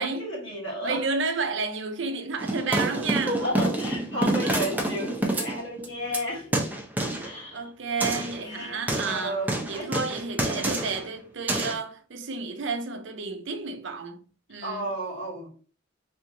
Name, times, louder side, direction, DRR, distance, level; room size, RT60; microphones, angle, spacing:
voice 1, 0.0-1.0 3.3-6.7 7.2-7.7 8.1-10.0 10.5-10.7 14.6-15.5, equal, 65° left, 2.2 m, -33 dB
voice 2, 0.8-3.4 4.4-4.6 7.2-9.4 9.7-14.2 14.5-14.9, right 4 dB, 65° right, 0.6 m, -31 dB
sound 1, 2.4-6.2 6.5-7.3 8.0-8.4 8.9-11.1 11.5-11.7, right 1 dB, 10° right, 0.6 m, -27 dB
3.5 x 3.0 x 3.9 m
head